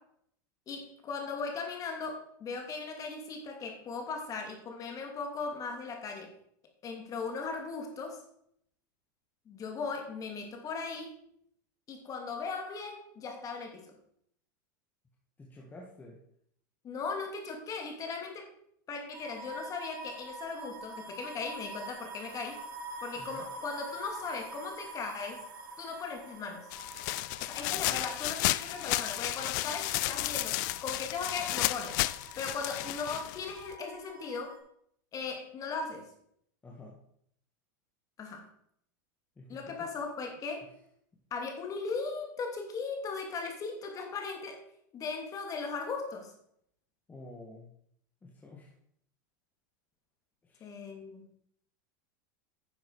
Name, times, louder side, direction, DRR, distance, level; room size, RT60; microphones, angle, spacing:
voice 1, 0.7-6.3 6.8-8.2 9.5-11.1 11.9-13.9 16.8-18.5 18.9-22.6 23.0-25.4 25.8-26.7 27.4-32.0 32.4-34.6 35.1-36.1 38.2-38.5 39.5-40.7 41.3-44.6 44.9-46.3 50.6-51.3, left 4 dB, 30° left, 3 dB, 2.8 m, -38 dB
voice 2, 15.4-16.2 23.2-23.5 27.7-27.9 36.6-37.0 39.4-39.9 47.1-47.7 48.2-48.7 50.4-50.7, left 2 dB, 15° left, -2 dB, 1.9 m, -49 dB
sound 1, 19.1-34.6, right 2 dB, 75° right, 3.1 m, -46 dB
sound 2, 26.7-33.7, left 19 dB, 60° left, 0.4 m, -33 dB
10.0 x 7.0 x 4.9 m, 0.69 s
supercardioid pair, 120°, 11 cm